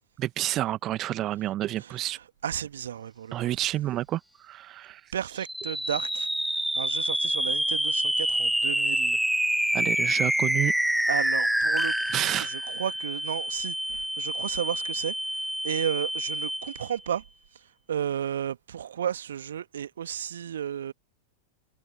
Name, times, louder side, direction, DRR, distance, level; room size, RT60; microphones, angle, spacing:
voice 1, 0.2-2.2 3.3-5.0 9.7-10.7 12.1-12.5, right 14 dB, 35° right, 1.4 m, -29 dB
voice 2, 2.4-3.5 5.1-9.2 11.1-15.2 15.6-17.2 17.9-20.9, right 9 dB, 65° right, 1.7 m, -33 dB
sound 1, 5.5-17.0, equal, ahead, 0.8 m, -27 dB
figure-of-eight pair, 90°, 0 cm